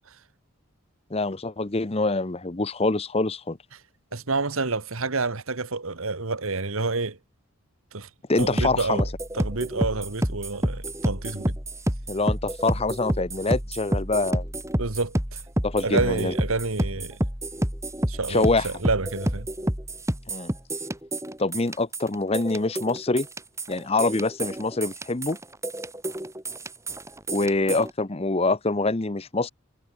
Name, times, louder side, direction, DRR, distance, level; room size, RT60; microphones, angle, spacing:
voice 1, 1.1-3.6 8.3-9.1 12.1-14.5 15.6-16.3 18.3-18.7 20.3-20.5 21.4-23.3 23.7-25.4 27.3-29.5, left 3 dB, 30° left, 0.8 m, -25 dB
voice 2, 4.1-7.2 7.9-8.1 8.4-9.0 9.3-11.6 14.8-15.4 15.8-17.2 18.1-19.5, right 3 dB, 80° right, 1.7 m, -28 dB
sound 1, 8.4-27.9, right 1 dB, 15° right, 3.0 m, -29 dB
head